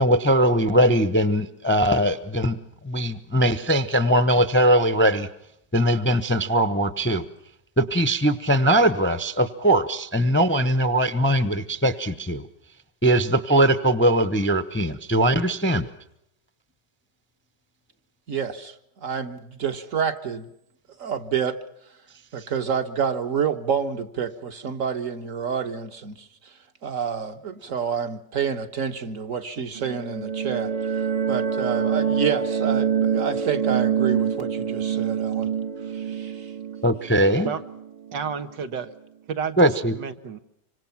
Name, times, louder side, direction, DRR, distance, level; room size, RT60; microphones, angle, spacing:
voice 1, 0.0-2.6 2.8-5.3 5.7-7.2 7.8-12.4 13.0-15.9 36.8-37.5 39.6-39.9, right 1 dB, 10° left, 0.7 m, -20 dB
voice 2, 18.3-18.7 19.0-20.5 21.0-21.6 22.3-26.3 26.8-35.5 35.9-36.5, right 7 dB, 50° right, 1.7 m, -28 dB
sound 1, 29.7-38.3, right 7 dB, 30° right, 0.7 m, -26 dB
voice 3, 38.1-38.9 39.3-40.4, right 6 dB, 85° right, 2.1 m, -31 dB
26.5 x 25.5 x 5.9 m
omnidirectional pair, 1.9 m